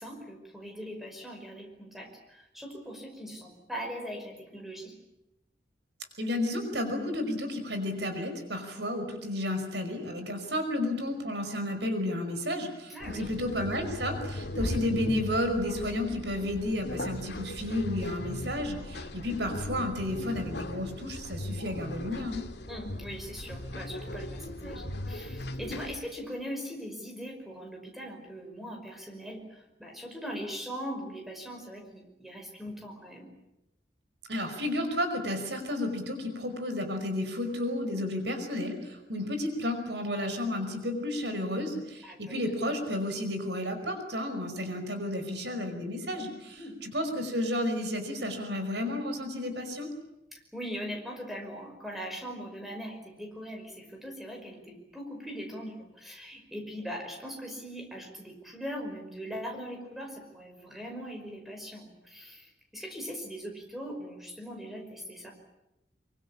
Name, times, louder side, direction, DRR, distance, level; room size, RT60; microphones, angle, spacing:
voice 1, 0.0-4.9 12.9-13.3 22.7-33.3 42.0-42.3 46.6-46.8 50.3-65.3, equal, ahead, 2 dB, 5.4 m, -40 dB
voice 2, 6.2-22.4 34.3-49.9, left 1 dB, 75° right, 6 dB, 5.4 m, -32 dB
sound 1, 13.0-26.0, left 1 dB, 70° left, 2.0 m, -38 dB
24.5 x 24.0 x 8.6 m, 0.90 s
head